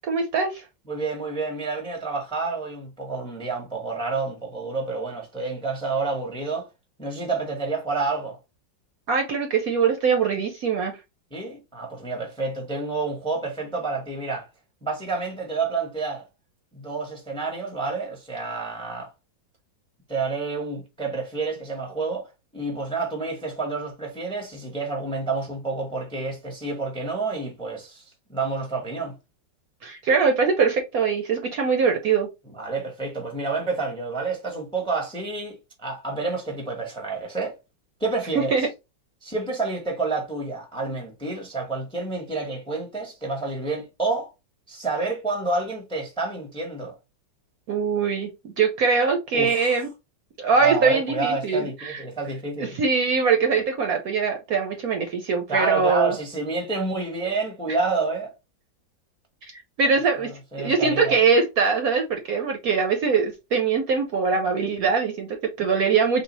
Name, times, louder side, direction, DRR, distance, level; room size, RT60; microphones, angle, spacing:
voice 1, 0.1-0.6 9.1-11.0 29.8-32.3 38.3-38.7 47.7-49.9 50.4-52.0 52.7-56.1 59.4-59.5 59.8-60.3 60.6-66.2, right 5 dB, 65° right, 1.0 m, -22 dB
voice 2, 0.9-6.7 7.0-8.4 11.3-14.5 14.8-16.2 16.7-19.1 20.1-29.2 32.5-37.5 38.0-38.7 39.2-44.3 44.7-47.0 49.3-49.8 50.6-52.8 55.5-58.3 60.2-61.2, right 3 dB, 5° left, 0.7 m, -29 dB
3.9 x 2.4 x 4.0 m
omnidirectional pair, 2.0 m